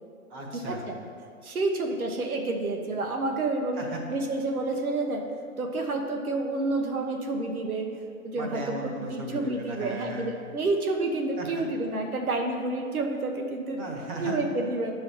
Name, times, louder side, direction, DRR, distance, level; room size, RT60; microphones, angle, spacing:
voice 1, 0.3-0.8 3.7-4.0 8.4-10.3 11.4-11.5 13.7-14.4, right 1 dB, 25° right, -1 dB, 1.3 m, -36 dB
voice 2, 1.4-3.8 4.1-5.2 5.6-7.9 8.2-8.8 9.1-13.8 14.2-14.9, right 2 dB, 90° right, 2 dB, 1.2 m, -29 dB
10.5 x 5.6 x 4.2 m, 2.2 s
hypercardioid pair, 145°, 42 cm